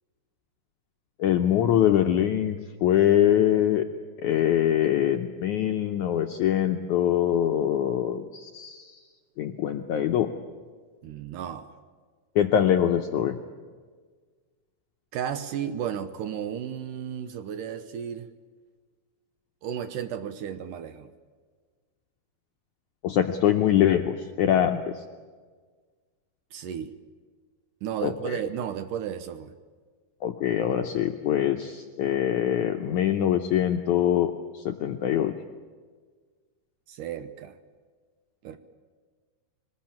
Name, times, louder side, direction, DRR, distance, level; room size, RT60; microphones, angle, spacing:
voice 1, 1.2-3.8 4.2-9.0 9.4-10.3 12.4-13.4 23.0-24.8 28.0-28.4 30.2-35.3, left 10 dB, 80° left, 5 dB, 1.7 m, -23 dB
voice 2, 11.0-11.7 15.1-18.3 19.6-21.1 26.5-26.9 27.8-29.5 36.9-37.6 38.4-38.6, right 9 dB, 70° right, 10 dB, 2.1 m, -33 dB
23.0 x 19.5 x 8.7 m, 1.5 s
omnidirectional pair, 4.4 m